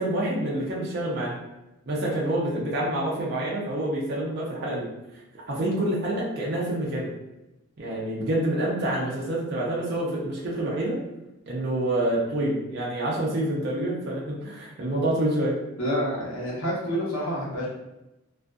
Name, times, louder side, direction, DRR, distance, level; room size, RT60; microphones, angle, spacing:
voice 1, 0.0-1.4 1.9-4.9 5.5-7.1 7.8-11.0 11.5-15.6, right 1 dB, 50° right, -5 dB, 0.5 m, -27 dB
voice 2, 15.8-17.7, equal, 70° left, -6 dB, 1.0 m, -28 dB
2.5 x 2.4 x 2.3 m, 0.95 s
head